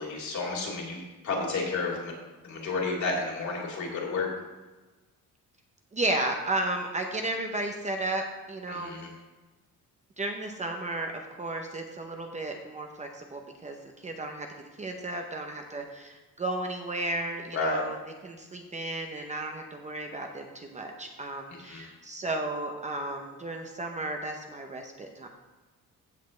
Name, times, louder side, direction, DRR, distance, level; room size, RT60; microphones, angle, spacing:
voice 1, 0.0-2.1 2.4-4.3 8.7-9.1 17.5-17.8 21.7-21.8, left 3 dB, 55° left, -2 dB, 2.9 m, -31 dB
voice 2, 5.9-9.0 10.2-13.8 14.0-14.5 14.8-18.0 18.2-25.3, right 2 dB, 20° right, 3 dB, 0.6 m, -33 dB
15.0 x 6.5 x 3.2 m, 1.2 s
cardioid pair, 170°, 34 cm